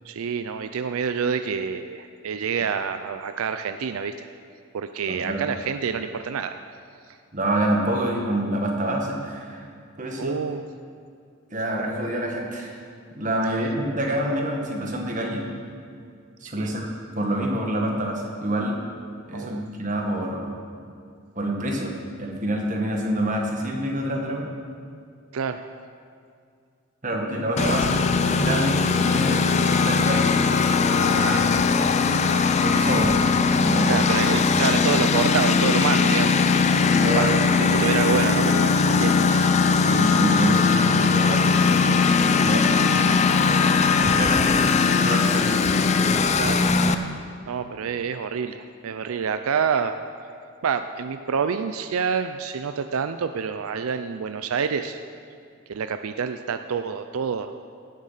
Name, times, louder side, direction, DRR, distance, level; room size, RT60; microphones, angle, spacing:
voice 1, 0.0-4.3 4.7-6.6 10.2-10.6 16.6-16.7 19.3-19.6 25.3-25.6 27.6-27.8 31.1-31.4 33.9-36.4 37.2-37.3 37.8-39.9 42.8-42.9 46.4-46.6 47.5-50.0 50.6-55.0 55.7-57.5, right 6 dB, 80° right, 9 dB, 0.4 m, -27 dB
voice 2, 5.1-5.4 7.3-9.7 10.0-10.4 11.5-12.8 13.2-15.5 16.4-16.9 17.1-18.8 19.3-20.5 21.3-24.5 27.0-30.3 30.7-31.4 32.5-34.0 36.8-37.8 38.2-38.4 39.8-43.0 44.0-45.6, right 1 dB, 35° right, 1 dB, 1.6 m, -27 dB
Engine, 27.6-46.9, left 5 dB, 30° left, 0.5 m, -20 dB
16.5 x 7.3 x 5.6 m, 2.3 s
head